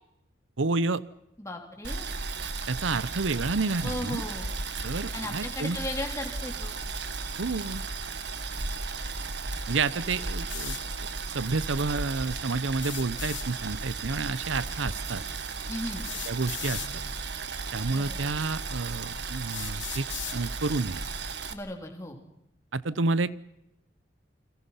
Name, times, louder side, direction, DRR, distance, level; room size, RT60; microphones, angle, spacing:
voice 1, 0.6-1.0 2.7-4.2 4.8-5.8 7.4-7.8 9.7-10.8 11.3-15.2 16.3-16.8 17.7-20.1 20.3-21.0 22.7-23.4, right 3 dB, 85° right, 18 dB, 0.8 m, -29 dB
voice 2, 1.4-2.1 3.8-4.5 5.1-6.8 15.7-16.1 17.9-18.2 21.5-22.2, left 1 dB, 15° left, 2 dB, 3.4 m, -36 dB
Boiling, 1.8-21.5, right 4 dB, 65° right, 1.8 m, -35 dB
sound 1, 10.5-10.8 12.8-13.5 14.9-15.0 16.0-16.9 17.9-18.0 18.7-18.8 19.5-20.4, left 12 dB, 80° left, 3.1 m, -37 dB
30.0 x 22.5 x 5.8 m, 0.84 s
head